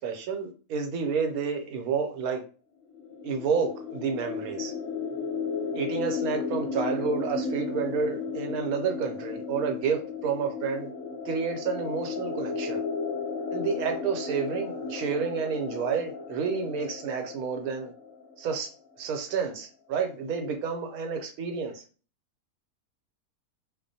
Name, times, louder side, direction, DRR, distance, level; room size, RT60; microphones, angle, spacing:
voice 1, 0.0-2.4 3.2-4.7 5.7-10.9 11.3-12.8 13.5-17.9 18.4-18.7 19.0-21.7, right 6 dB, 80° right, 4 dB, 1.1 m, -30 dB
sound 1, 2.9-18.6, left 5 dB, 60° left, 0.9 m, -34 dB
2.4 x 2.1 x 2.6 m, 0.37 s
omnidirectional pair, 1.5 m